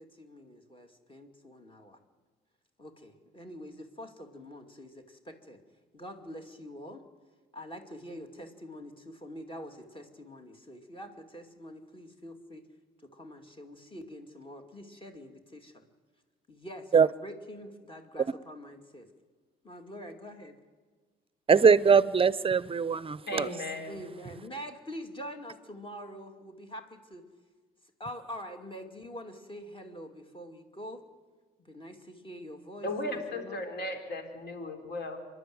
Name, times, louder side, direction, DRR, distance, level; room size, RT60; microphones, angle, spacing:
voice 1, 0.0-2.0 2.8-5.6 5.9-7.0 7.5-12.7 13.0-15.8 16.5-19.1 19.6-20.6 23.9-27.2 28.0-31.0 31.6-33.6, equal, 25° left, 2.4 m, -45 dB
voice 2, 21.5-23.5, right 6 dB, 25° right, 0.6 m, -22 dB
voice 3, 23.3-24.0 32.8-35.2, left 1 dB, 60° left, 3.7 m, -36 dB
25.0 x 11.0 x 9.4 m
cardioid pair, 90°, 20 cm